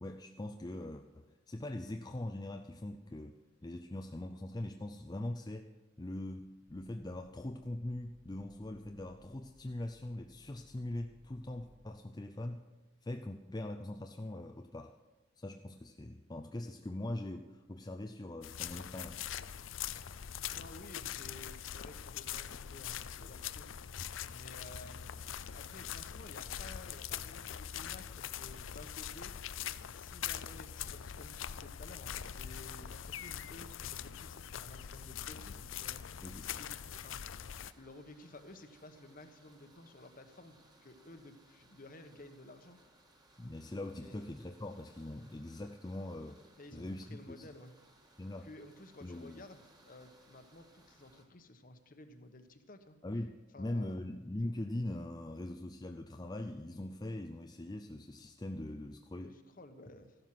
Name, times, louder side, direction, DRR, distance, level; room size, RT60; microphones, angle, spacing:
voice 1, 0.0-3.4 3.6-5.7 6.0-12.6 13.0-14.9 15.4-19.3 36.2-36.6 43.4-46.4 46.7-47.5 48.2-48.5 49.0-49.4 53.0-59.4, left 1 dB, 20° left, 5 dB, 0.5 m, -42 dB
sound 1, 6.7-11.9, equal, 50° right, 3.4 m, -64 dB
sound 2, 18.4-37.7, left 9 dB, 75° left, 0.5 m, -43 dB
voice 2, 20.5-36.0 36.6-37.4 37.8-42.8 43.9-44.2 46.6-47.7 48.4-53.0 53.5-53.9 59.2-60.1, left 2 dB, 45° left, 8 dB, 1.2 m, -54 dB
sound 3, 37.4-51.2, right 1 dB, 20° right, 1.8 m, -65 dB
14.5 x 12.0 x 5.9 m, 1.2 s
head